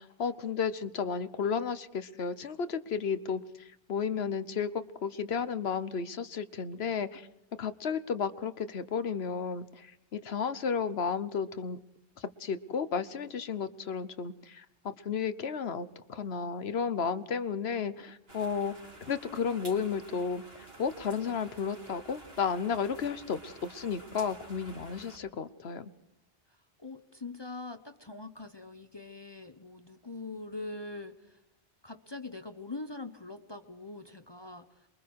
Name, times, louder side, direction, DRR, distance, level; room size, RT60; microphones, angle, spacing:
voice 1, 0.0-7.3 7.6-11.8 12.2-18.7 19.0-25.9, left 6 dB, 80° left, 13 dB, 1.2 m, -33 dB
sound 1, 18.3-25.2, right 2 dB, 70° right, 3.3 m, -51 dB
voice 2, 26.8-31.2 31.8-34.7, left 3 dB, 25° left, 7 dB, 1.0 m, -42 dB
27.5 x 22.5 x 4.7 m, 0.85 s
omnidirectional pair, 1.1 m